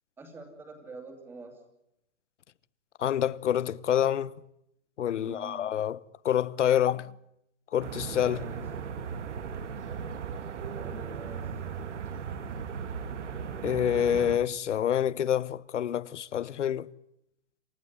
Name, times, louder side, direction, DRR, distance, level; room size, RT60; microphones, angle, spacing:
voice 1, 0.2-1.6 5.2-5.7 8.2-8.7 10.7-11.5, right 3 dB, 5° right, 2.6 m, -46 dB
voice 2, 3.0-4.3 5.0-6.0 6.2-7.1 7.7-8.5 13.6-16.9, left 10 dB, 90° left, 1.0 m, -27 dB
sound 1, 7.8-14.4, right 6 dB, 80° right, 2.2 m, -37 dB
28.0 x 16.0 x 9.6 m
hypercardioid pair, 175°, 35 cm